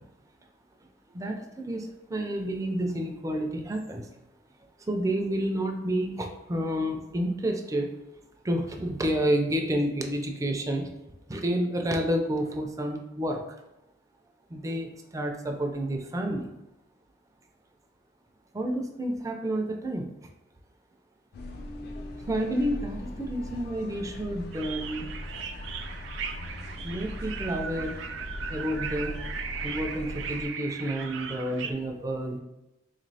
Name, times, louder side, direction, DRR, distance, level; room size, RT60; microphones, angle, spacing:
voice 1, 1.1-4.1 4.9-7.9 8.4-10.9 11.3-13.4 14.5-16.5 18.5-20.1 22.3-25.0 26.8-28.0 28.5-29.2 29.6-32.4, right 1 dB, 20° right, 3 dB, 0.4 m, -30 dB
sound 1, 21.3-30.5, left 1 dB, 60° left, 0.4 m, -40 dB
sound 2, 24.5-31.7, right 6 dB, 85° right, 0.4 m, -38 dB
4.0 x 3.0 x 2.7 m, 0.95 s
head